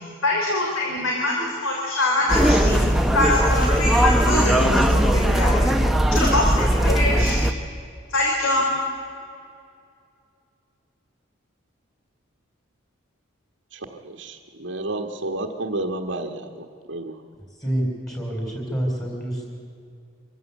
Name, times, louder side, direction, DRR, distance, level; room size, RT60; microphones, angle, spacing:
voice 1, 0.2-2.8 3.1-5.7 6.1-7.4 8.1-8.6, left 2 dB, 80° left, -2 dB, 3.5 m, -24 dB
sound 1, 2.3-7.5, equal, ahead, 0.8 m, -19 dB
voice 2, 13.7-17.1, right 2 dB, 65° right, 1 dB, 1.3 m, -31 dB
voice 3, 17.6-19.5, right 1 dB, 15° left, 0 dB, 3.9 m, -27 dB
24.5 x 14.5 x 8.2 m, 2.4 s
head